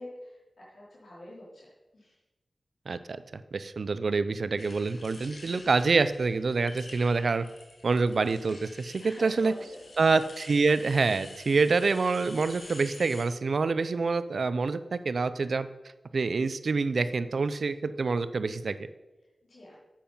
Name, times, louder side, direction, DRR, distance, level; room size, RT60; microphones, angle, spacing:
voice 1, 0.0-2.2 6.9-7.2 9.0-10.2 19.4-19.8, left 1 dB, 90° left, -6 dB, 3.7 m, -47 dB
voice 2, 2.9-7.5 7.8-9.5 10.0-15.7 16.1-18.8, right 4 dB, 75° right, 13 dB, 0.5 m, -26 dB
sound 1, 4.6-13.3, left 2 dB, 60° left, 1.9 m, -49 dB
8.6 x 7.5 x 5.5 m, 1.1 s
wide cardioid pair, 75°, 0 cm